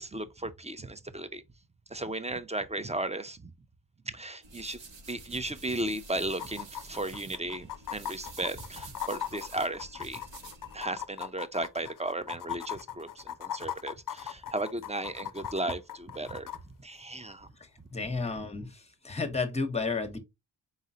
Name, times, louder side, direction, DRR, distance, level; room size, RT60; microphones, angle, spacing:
voice 1, 0.0-1.4 1.9-3.5 4.1-4.8 5.1-10.2 10.7-16.5 16.8-17.5, right 2 dB, 15° right, 0.5 m, -35 dB
sound 1, 4.4-10.8, right 3 dB, 70° right, 1.3 m, -49 dB
sound 2, 5.3-5.4 5.6-5.7 6.3-16.6 18.3-18.4, left 10 dB, 45° left, 0.5 m, -39 dB
voice 2, 17.9-20.2, left 4 dB, 15° left, 1.0 m, -32 dB
4.2 x 3.7 x 2.7 m
cardioid pair, 65°, 46 cm